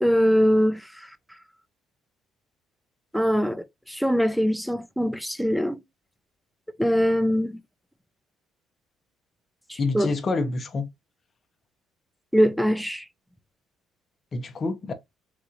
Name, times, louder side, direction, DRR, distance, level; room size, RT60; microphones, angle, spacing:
voice 1, 0.0-1.1 3.1-5.8 6.8-7.6 9.7-10.1 12.3-13.0, equal, ahead, 0.3 m, -22 dB
voice 2, 9.8-10.9 14.3-14.9, left 3 dB, 35° left, 0.7 m, -27 dB
3.9 x 3.0 x 2.3 m
cardioid pair, 125°, 0 cm